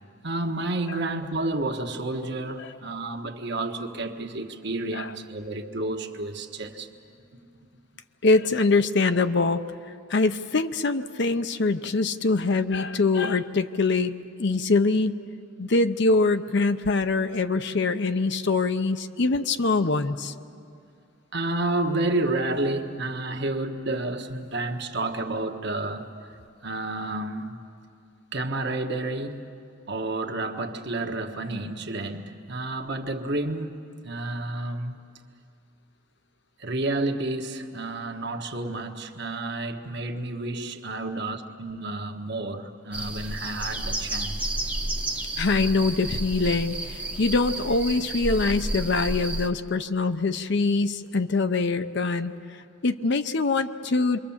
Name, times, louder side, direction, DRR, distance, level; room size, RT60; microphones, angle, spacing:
voice 1, 0.2-6.9 8.5-8.6 21.3-26.1 26.6-27.6 28.3-29.5 29.9-35.0 36.6-44.5, right 2 dB, 55° right, 1.4 m, -30 dB
voice 2, 8.2-9.6 10.1-14.1 14.4-15.2 15.6-20.3 45.4-52.3 52.8-54.2, left 3 dB, 55° left, 0.7 m, -23 dB
sound 1, 42.9-49.5, right 1 dB, 5° right, 0.8 m, -31 dB
27.0 x 23.0 x 7.3 m
head